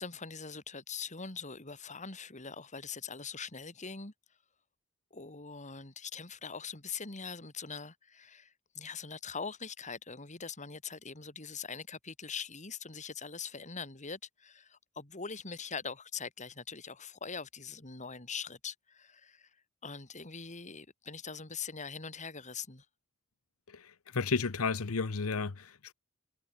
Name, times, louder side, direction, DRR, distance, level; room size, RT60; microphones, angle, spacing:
voice 1, 0.0-4.1 5.1-19.5 19.8-22.8, left 5 dB, 35° left, 3.1 m, -42 dB
voice 2, 23.7-25.9, left 4 dB, 90° left, 0.9 m, -33 dB
head